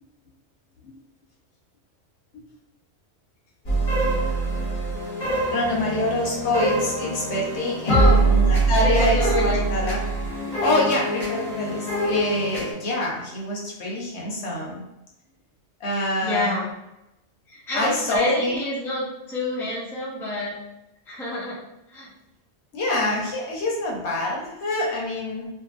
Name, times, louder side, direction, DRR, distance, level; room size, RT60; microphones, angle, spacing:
sound 1, 3.6-12.7, right 2 dB, 45° left, 0.8 m, -24 dB
voice 1, 5.5-10.0 10.3-14.8 15.8-16.5 17.7-18.6 22.7-25.5, left 1 dB, 70° left, -3 dB, 1.0 m, -26 dB
voice 2, 7.9-8.2 8.8-9.7 16.2-16.7 17.5-20.6 21.1-21.6 21.9-22.1, left 1 dB, 5° left, -6 dB, 0.4 m, -27 dB
2.6 x 2.6 x 2.4 m, 0.92 s
omnidirectional pair, 1.2 m